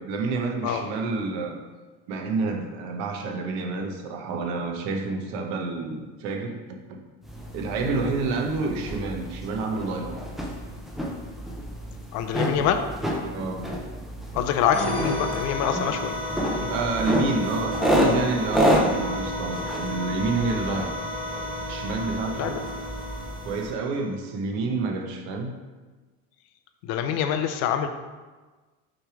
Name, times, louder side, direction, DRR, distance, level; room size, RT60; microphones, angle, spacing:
voice 1, 0.0-1.6 2.1-6.8 7.5-10.2 13.3-13.7 16.6-21.0 21.7-22.8 23.4-25.5, right 3 dB, 55° right, 3 dB, 0.9 m, -29 dB
sound 1, 7.2-23.7, equal, ahead, 0.4 m, -29 dB
voice 2, 12.1-12.8 14.3-16.1 22.4-22.6 26.8-27.9, left 9 dB, 55° left, 8 dB, 0.5 m, -25 dB
sound 2, 14.7-24.2, left 1 dB, 20° left, 0.8 m, -33 dB
6.1 x 3.3 x 4.9 m, 1.3 s
cardioid pair, 160°, 32 cm